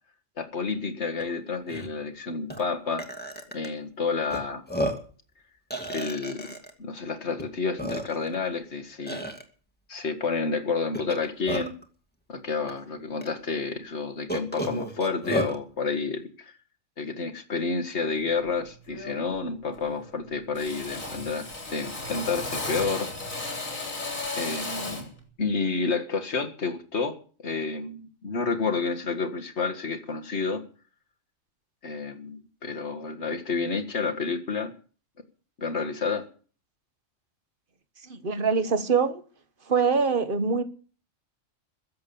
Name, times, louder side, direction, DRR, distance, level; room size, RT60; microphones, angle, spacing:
voice 1, 0.4-3.1 3.5-4.6 5.9-6.4 6.8-9.2 9.9-11.7 12.3-16.5 17.0-23.1 24.3-25.1 25.4-27.2 27.4-30.6 31.8-34.7 35.6-36.2, left 4 dB, 60° left, 2.1 m, -30 dB
Burping eructation, 1.2-1.3 1.7-1.9 2.5-2.6 3.0-3.7 4.3-4.4 4.7-5.1 5.7-6.7 7.4-7.5 7.8-8.3 9.1-9.4 10.9-11.8 12.7-12.8 13.2-13.3 14.3-15.6, equal, 5° left, 2.3 m, -32 dB
Drill, 18.2-18.5 18.9-19.4 19.6-20.2 20.5-25.2, left 2 dB, 85° left, 4.0 m, -35 dB
voice 2, 38.0-39.2 39.7-40.6, right 5 dB, 45° right, 1.4 m, -24 dB
22.0 x 7.9 x 7.0 m
omnidirectional pair, 1.3 m